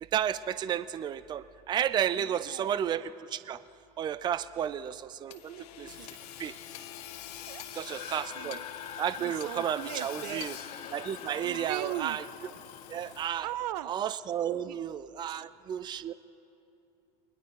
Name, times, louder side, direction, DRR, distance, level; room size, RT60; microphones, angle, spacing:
voice 1, 0.0-3.6 4.0-5.3 5.8-6.0 6.4-6.5 7.7-8.6 9.0-10.6 10.9-12.2 12.9-13.5 13.8-16.1, right 9 dB, 20° right, 14 dB, 0.5 m, -32 dB
voice 2, 2.2-2.8 5.3-6.2 7.5-7.6 7.9-8.6 9.2-10.4 11.4-12.2 13.4-13.9 14.7-14.8 15.3-15.4, right 15 dB, 85° right, 17 dB, 0.6 m, -40 dB
Hammer / Sawing, 5.3-13.5, left 11 dB, 75° left, 1.5 m, -46 dB
sound 1, 7.9-13.8, left 8 dB, 30° left, 0.8 m, -45 dB
29.5 x 21.0 x 4.7 m, 2.7 s
supercardioid pair, 135°, 20 cm